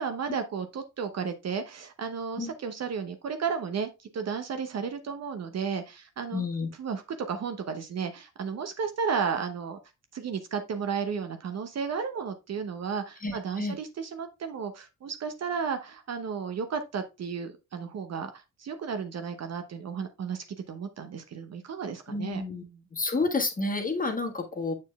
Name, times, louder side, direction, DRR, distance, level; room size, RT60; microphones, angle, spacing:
voice 1, 0.0-6.4 6.8-7.0 7.3-9.8 10.1-22.4, right 6 dB, 40° right, 0.9 m, -33 dB
voice 2, 6.3-6.7 13.2-13.7 22.1-22.6 22.9-24.7, left 3 dB, 20° left, 1.5 m, -30 dB
7.4 x 6.4 x 2.3 m
figure-of-eight pair, 45°, 40 cm